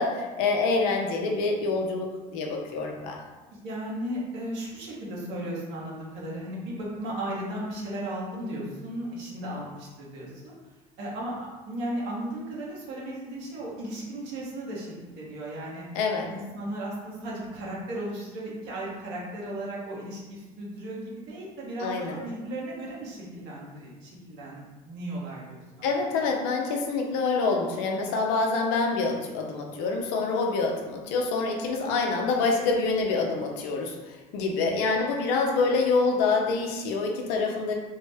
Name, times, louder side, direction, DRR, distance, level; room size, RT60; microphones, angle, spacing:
voice 1, 0.0-3.2 15.9-16.3 21.8-22.2 25.8-37.7, left 4 dB, 75° left, 2 dB, 0.6 m, -26 dB
voice 2, 3.6-10.5 11.0-15.8 16.3-25.9, right 1 dB, 65° right, -4 dB, 1.2 m, -35 dB
3.6 x 2.1 x 3.4 m, 1.2 s
supercardioid pair, 80°, 19 cm